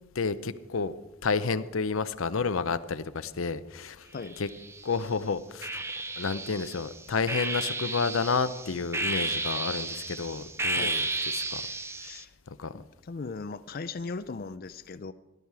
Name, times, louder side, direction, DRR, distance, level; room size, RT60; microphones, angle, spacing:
voice 1, 0.1-0.9 1.2-4.1 4.4-4.5 4.8-5.8 6.2-11.1 11.3-11.7 12.5-12.8, left 4 dB, 85° left, 13 dB, 0.7 m, -30 dB
sound 1, 4.2-5.0 5.6-12.2, right 2 dB, 15° right, 0.6 m, -33 dB
voice 2, 12.0-12.3 12.7-15.1, left 4 dB, 45° left, 10 dB, 0.5 m, -38 dB
18.0 x 12.0 x 4.8 m, 1.1 s
head